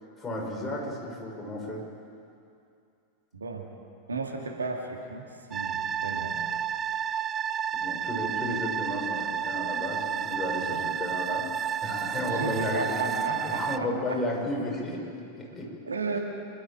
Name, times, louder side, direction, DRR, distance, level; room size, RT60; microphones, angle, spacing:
voice 1, 0.2-1.8 7.7-11.5 11.8-15.7, left 1 dB, 15° left, -3 dB, 6.1 m, -33 dB
voice 2, 3.3-3.7 4.1-5.2 5.5-6.5 10.6-10.9 12.4-14.2 15.9-16.2, right 3 dB, 75° right, 1 dB, 2.3 m, -34 dB
sound 1, 5.5-13.8, right 8 dB, 25° right, 0.5 m, -31 dB
27.0 x 11.5 x 8.9 m, 2.6 s
figure-of-eight pair, 90°, 0 cm